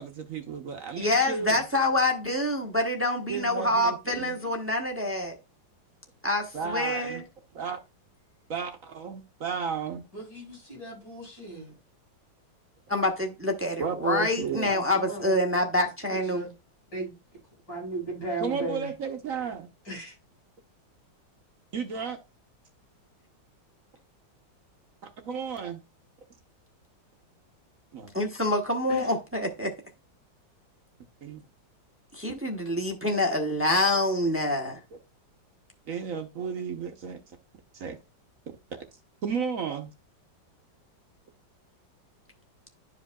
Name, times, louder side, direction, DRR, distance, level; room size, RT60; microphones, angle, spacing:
voice 1, 0.0-1.6 3.3-4.4 6.5-7.2 7.5-7.8 8.5-10.0 13.8-14.7 18.4-19.7 21.7-22.2 25.0-25.8 27.9-28.1 31.2-31.4 35.9-37.4 37.7-38.0 39.2-39.9, right 6 dB, 55° right, 1.1 m, -33 dB
voice 2, 1.0-5.4 6.2-7.2 12.9-16.4 28.1-29.7 32.1-34.8, left 1 dB, 15° right, 0.5 m, -26 dB
voice 3, 10.1-11.7 14.7-16.5 16.9-17.1 17.7-18.9 19.9-20.1 28.9-29.1, right 2 dB, 70° left, 5.9 m, -37 dB
12.0 x 5.0 x 2.3 m
omnidirectional pair, 2.0 m